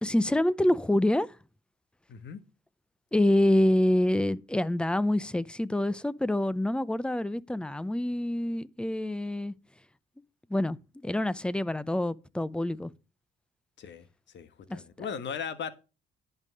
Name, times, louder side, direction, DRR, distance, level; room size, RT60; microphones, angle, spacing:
voice 1, 0.0-1.3 3.1-9.5 10.5-10.8 11.0-12.9 14.7-14.8, left 1 dB, 5° left, 0.6 m, -26 dB
voice 2, 2.1-2.4 13.8-14.1 14.3-15.7, left 7 dB, 65° left, 1.4 m, -37 dB
11.0 x 5.5 x 6.4 m
cardioid pair, 90°, 20 cm